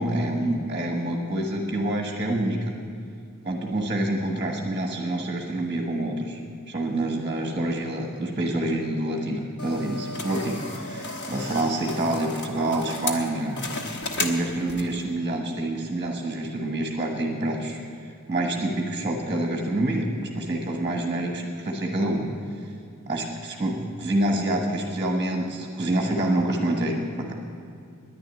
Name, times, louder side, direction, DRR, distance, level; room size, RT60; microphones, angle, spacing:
voice 1, 0.0-2.7 3.4-6.4 6.7-13.7 14.2-17.8 18.3-22.3 23.1-27.3, right 1 dB, 20° right, 1 dB, 1.3 m, -27 dB
sound 1, 9.6-15.0, left 2 dB, 50° left, 1.2 m, -34 dB
10.5 x 10.0 x 9.8 m, 2.4 s
head